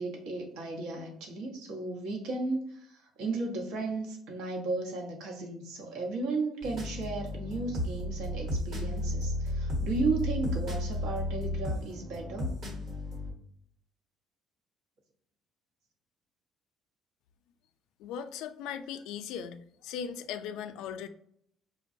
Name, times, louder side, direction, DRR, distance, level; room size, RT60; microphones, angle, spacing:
voice 1, 0.0-12.5, right 3 dB, 80° right, 0 dB, 1.0 m, -34 dB
sound 1, 6.6-13.3, left 1 dB, 50° right, 1.1 m, -33 dB
voice 2, 18.0-21.1, left 8 dB, 80° left, 9 dB, 0.3 m, -38 dB
5.1 x 2.2 x 2.6 m, 0.68 s
cardioid pair, 150°, 0 cm